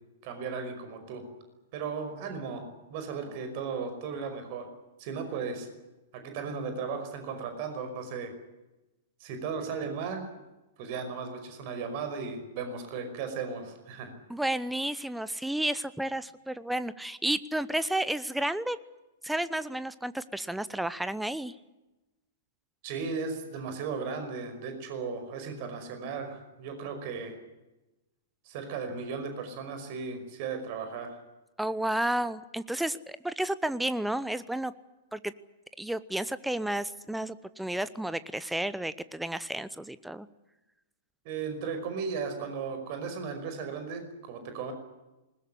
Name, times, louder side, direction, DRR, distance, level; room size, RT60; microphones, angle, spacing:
voice 1, 0.2-1.3 1.7-4.7 5.0-5.7 6.1-8.3 9.2-10.3 10.8-14.2 22.8-27.4 28.5-31.2 41.2-44.7, right 5 dB, 40° right, 7 dB, 5.3 m, -36 dB
voice 2, 14.3-18.8 19.2-21.5 31.6-34.7 35.1-35.3 35.8-40.3, right 1 dB, 5° right, 15 dB, 0.8 m, -31 dB
20.5 x 20.5 x 10.0 m, 1.0 s
figure-of-eight pair, 100°, 0 cm